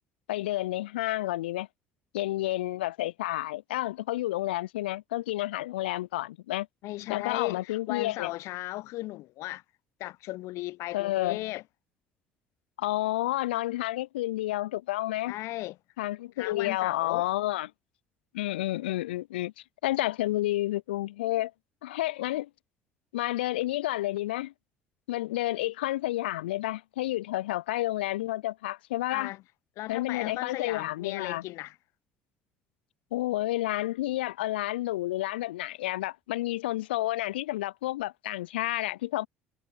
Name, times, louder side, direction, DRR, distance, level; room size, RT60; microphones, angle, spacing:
voice 1, 0.3-1.7 2.1-6.7 7.1-8.3 10.9-11.5 12.8-15.3 16.0-17.7 18.3-19.5 19.8-21.5 21.8-22.5 23.1-24.5 25.1-29.3 29.9-31.4 33.1-39.3, left 16 dB, 70° left, 0.7 m, -30 dB
voice 2, 6.8-9.6 10.0-11.6 15.3-15.8 16.4-17.3 29.1-29.4 29.8-31.7, left 18 dB, 55° left, 1.1 m, -36 dB
figure-of-eight pair, 55°, 6 cm